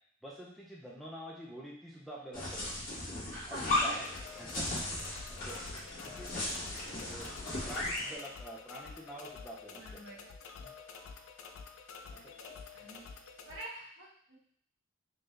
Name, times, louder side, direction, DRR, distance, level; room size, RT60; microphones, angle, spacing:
voice 1, 0.2-2.8 3.4-4.1 4.4-4.7 5.3-5.6 6.0-6.3 6.9-7.3 7.7-10.0 10.6-10.7 12.1-12.3, equal, ahead, -5 dB, 0.4 m, -47 dB
sound 1, 2.3-8.2, left 2 dB, 45° left, 1.5 m, -36 dB
voice 2, 3.1-3.9 5.5-5.6 9.7-10.2 12.1-13.1 13.5-14.4, right 1 dB, 65° right, -7 dB, 1.5 m, -47 dB
sound 2, 4.0-13.6, left 5 dB, 85° left, 0.4 m, -49 dB
3.7 x 2.7 x 3.2 m, 0.62 s
head